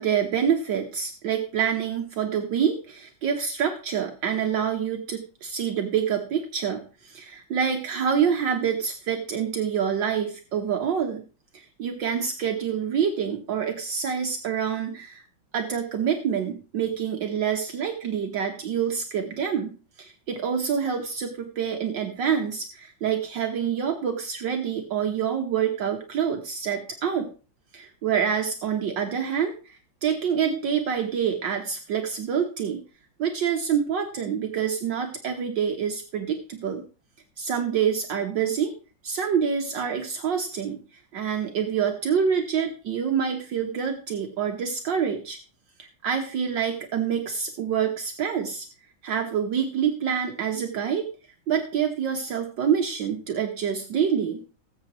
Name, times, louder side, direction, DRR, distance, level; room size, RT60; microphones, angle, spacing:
voice 1, 0.0-11.2 11.5-15.2 15.5-27.3 27.7-32.8 33.2-36.9 37.4-38.7 39.0-40.8 41.1-45.4 45.8-48.7 49.0-51.1 51.5-54.4, right 7 dB, 65° right, 3 dB, 1.7 m, -27 dB
19.5 x 7.7 x 3.0 m, 0.34 s
omnidirectional pair, 2.2 m